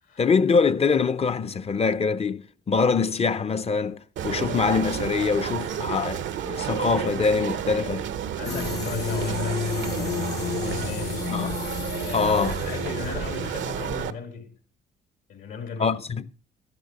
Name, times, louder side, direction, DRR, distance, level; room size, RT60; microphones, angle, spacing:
voice 1, 0.2-8.1 11.3-11.6 12.1-12.6 15.8-16.2, left 5 dB, 30° left, 0.6 m, -24 dB
sound 1, 4.2-14.1, right 9 dB, 70° right, 0.7 m, -31 dB
voice 2, 8.3-11.4 12.0-14.6 15.3-16.0, left 6 dB, 75° left, 2.8 m, -37 dB
sound 2, 8.4-13.7, left 7 dB, 55° left, 0.9 m, -31 dB
13.5 x 10.5 x 4.1 m
cardioid pair, 90°, 20 cm